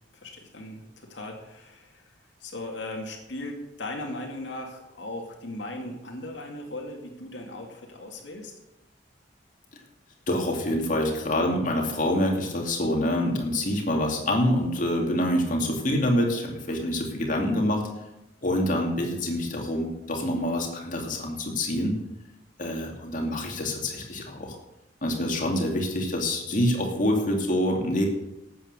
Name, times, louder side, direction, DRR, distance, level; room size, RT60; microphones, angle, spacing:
voice 1, 0.2-0.8 1.1-2.1 2.4-8.5, left 1 dB, 75° left, 1 dB, 2.3 m, -38 dB
voice 2, 10.3-17.9 18.4-21.9 22.6-24.6 25.0-28.1, left 1 dB, 45° left, 1 dB, 2.6 m, -26 dB
12.5 x 8.7 x 6.7 m, 0.93 s
head